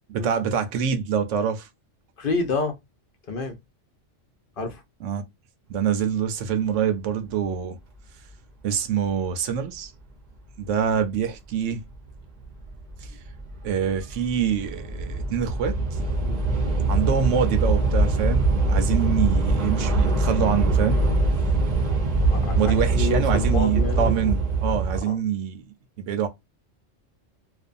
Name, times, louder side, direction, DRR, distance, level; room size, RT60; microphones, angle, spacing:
voice 1, 0.1-1.7 5.0-5.3 5.7-7.8 8.6-9.9 10.6-11.8 13.0-13.1 13.6-16.1 16.9-21.0 22.6-25.6 26.0-26.3, right 7 dB, 80° right, 0.9 m, -25 dB
voice 2, 2.2-2.7 3.3-3.6 4.6-4.8 16.2-16.5 22.3-24.3 25.1-25.2, left 3 dB, 55° left, 0.7 m, -29 dB
Train / Subway metro underground, 11.9-12.2 12.4-25.0, right 2 dB, 45° right, 0.7 m, -23 dB
2.5 x 2.2 x 2.4 m
omnidirectional pair, 1.3 m